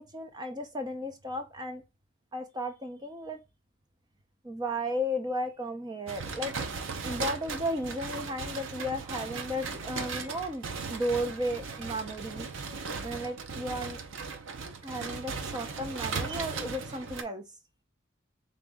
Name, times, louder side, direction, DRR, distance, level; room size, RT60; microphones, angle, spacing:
voice 1, 0.0-1.8 2.3-3.4 4.4-6.6 7.0-12.5 13.0-14.0 14.8-17.4, equal, 20° right, 0.7 m, -34 dB
sound 1, 6.1-17.2, right 4 dB, 85° right, 0.7 m, -37 dB
3.9 x 3.0 x 3.5 m
head